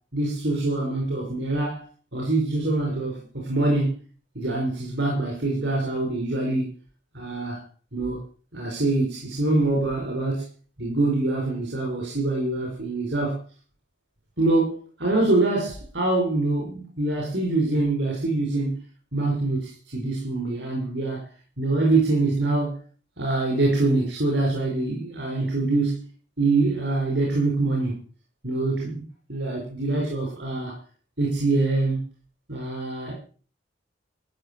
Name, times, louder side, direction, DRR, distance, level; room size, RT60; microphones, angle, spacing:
voice 1, 0.1-1.8 2.1-4.0 4.3-6.7 7.1-7.6 7.9-8.2 8.5-10.4 10.8-13.4 14.4-18.8 19.1-21.2 21.6-22.8 23.2-26.1 26.4-28.0 28.4-29.0 29.3-30.8 31.2-32.0 32.5-33.2, right 2 dB, 70° right, -2 dB, 5.0 m, -24 dB
14.5 x 6.7 x 8.8 m, 0.39 s
head